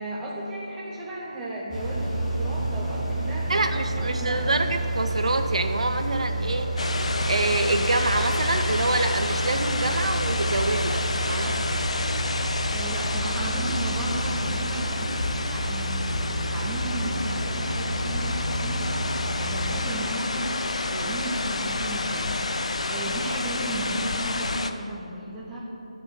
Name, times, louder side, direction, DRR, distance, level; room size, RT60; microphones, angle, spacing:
voice 1, 0.0-4.6 12.7-25.6, right 1 dB, 10° right, -6 dB, 1.0 m, -34 dB
sound 1, 1.7-19.9, right 1 dB, 10° left, 2.3 m, -30 dB
voice 2, 3.5-6.9 7.3-11.6 20.9-21.1, right 2 dB, 60° right, 7 dB, 0.7 m, -26 dB
sound 2, 6.8-24.7, left 3 dB, 65° left, 0.6 m, -29 dB
9.8 x 6.1 x 7.4 m, 2.8 s
figure-of-eight pair, 160°, 4 cm